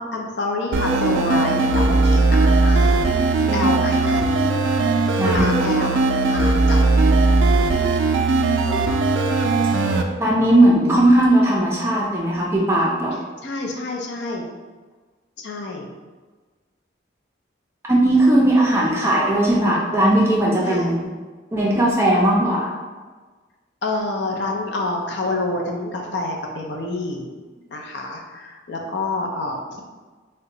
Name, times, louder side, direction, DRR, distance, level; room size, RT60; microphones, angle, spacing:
voice 1, 0.0-4.6 5.3-5.9 6.3-6.9 13.4-14.5 15.4-15.9 20.6-21.0 23.8-27.2 27.7-29.8, left 2 dB, 70° left, 1 dB, 0.5 m, -28 dB
sound 1, 0.7-10.0, right 3 dB, 90° right, 0.3 m, -18 dB
voice 2, 5.2-5.5 10.2-13.2 17.9-21.0 21.5-22.7, right 1 dB, 15° right, -4 dB, 0.4 m, -17 dB
2.7 x 2.2 x 3.8 m, 1.4 s
head